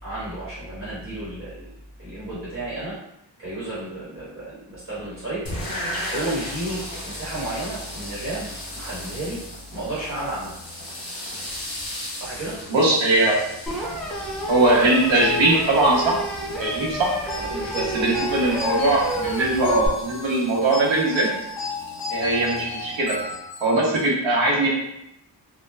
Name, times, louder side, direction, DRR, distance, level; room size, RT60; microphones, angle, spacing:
voice 1, 0.0-1.7 2.0-3.0 3.4-5.4 5.9-9.4 9.7-10.6 12.1-12.6 17.4-18.3, right 1 dB, 30° right, -10 dB, 1.2 m, -32 dB
sound 1, 5.4-23.3, left 1 dB, 50° left, 1.0 m, -37 dB
voice 2, 12.7-13.4 14.5-16.2 16.4-17.1 17.9-21.3 22.1-23.1 23.6-24.8, right 2 dB, 85° right, -3 dB, 0.9 m, -20 dB
sound 2, 13.7-19.9, right 1 dB, ahead, 0.4 m, -30 dB
sound 3, 17.3-24.1, left 4 dB, 65° left, 0.5 m, -33 dB
3.0 x 2.1 x 2.2 m, 0.82 s
wide cardioid pair, 125°, 45 cm